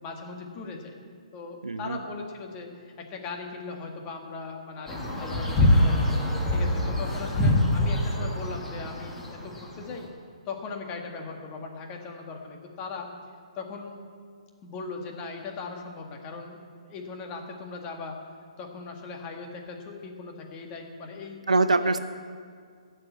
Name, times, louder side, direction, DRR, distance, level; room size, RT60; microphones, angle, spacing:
voice 1, 0.0-0.9 1.3-6.1 6.5-10.1 10.5-13.1 13.6-14.0 14.6-16.6 16.8-18.2 18.6-21.4 21.8-22.0, left 4 dB, 25° left, 2 dB, 1.8 m, -39 dB
voice 2, 1.6-2.0 21.5-22.0, right 3 dB, 90° right, 11 dB, 0.8 m, -23 dB
sound 1, 4.9-9.9, left 1 dB, 10° left, 2.0 m, -25 dB
15.0 x 6.7 x 8.5 m, 2.1 s
hypercardioid pair, 140°, 4 cm